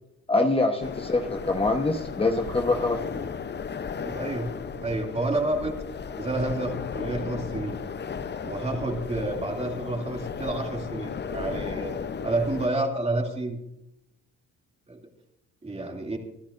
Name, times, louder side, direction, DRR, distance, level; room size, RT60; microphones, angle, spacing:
voice 1, 0.3-3.3, left 2 dB, 20° left, 4 dB, 1.2 m, -25 dB
sound 1, 0.8-12.7, left 6 dB, 35° left, 0.8 m, -35 dB
voice 2, 4.0-4.5 4.8-5.8 6.2-7.8 8.4-11.9 12.2-13.6 14.9-15.0 15.6-16.2, right 2 dB, 20° right, 1 dB, 2.8 m, -29 dB
26.0 x 11.5 x 2.6 m, 0.82 s
cardioid pair, 90°, 30 cm